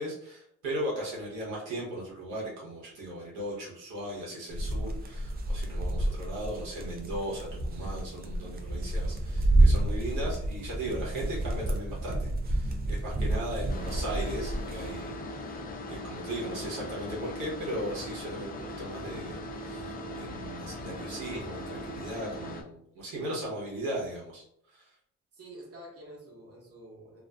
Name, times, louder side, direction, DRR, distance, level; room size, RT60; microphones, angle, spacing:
voice 1, 0.0-24.9, right 1 dB, 80° right, -5 dB, 0.9 m, -37 dB
sound 1, 4.5-15.0, right 1 dB, 30° right, 0.4 m, -29 dB
sound 2, 13.7-22.6, left 1 dB, 30° left, 0.4 m, -39 dB
voice 2, 23.0-23.3 25.3-27.2, right 1 dB, 50° right, -3 dB, 1.1 m, -48 dB
2.5 x 2.4 x 2.2 m, 0.71 s
cardioid pair, 90°, 30 cm